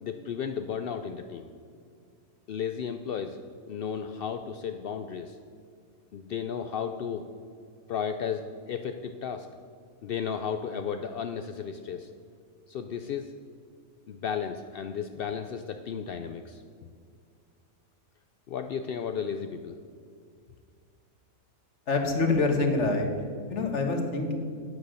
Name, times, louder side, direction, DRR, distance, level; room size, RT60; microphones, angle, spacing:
voice 1, 0.0-1.5 2.5-3.4 3.7-5.4 6.1-7.3 7.9-9.5 10.0-12.1 12.7-13.3 14.1-16.6 18.5-19.8, left 7 dB, 70° left, 7 dB, 0.5 m, -34 dB
voice 2, 21.9-23.1 23.5-24.3, left 3 dB, 55° left, 3 dB, 1.6 m, -25 dB
9.4 x 8.1 x 6.4 m, 2.2 s
omnidirectional pair, 1.5 m